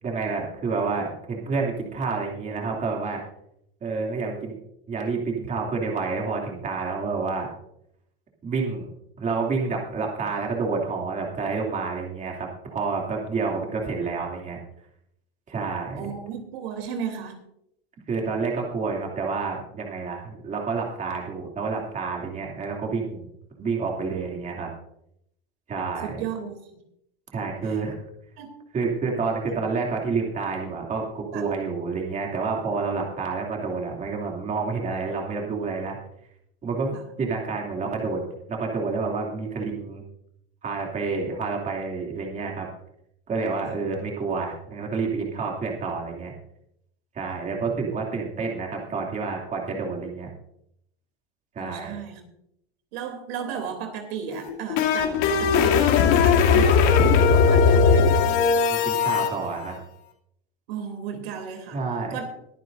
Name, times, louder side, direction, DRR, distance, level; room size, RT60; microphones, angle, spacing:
voice 1, 0.0-3.2 3.8-4.6 4.9-7.5 8.4-8.9 9.2-14.6 15.5-16.0 18.1-23.3 23.6-24.7 25.7-26.1 27.3-28.0 28.7-36.0 36.6-38.2 38.5-40.0 40.6-42.7 43.3-46.3 47.1-50.3 51.5-52.0 58.7-59.8 61.7-62.2, right 4 dB, 25° right, -1 dB, 2.8 m, -29 dB
voice 2, 15.9-17.4 26.0-26.8 27.6-27.8 28.4-28.5 31.3-31.5 36.9-37.0 43.6-43.7 47.5-47.7 51.6-52.2 52.9-58.4 60.7-61.8 62.1-62.4, right 7 dB, 75° right, 5 dB, 3.2 m, -35 dB
sound 1, 54.3-59.3, left 6 dB, 60° left, 2.9 m, -18 dB
22.5 x 9.7 x 2.6 m, 0.77 s
supercardioid pair, 140°, 31 cm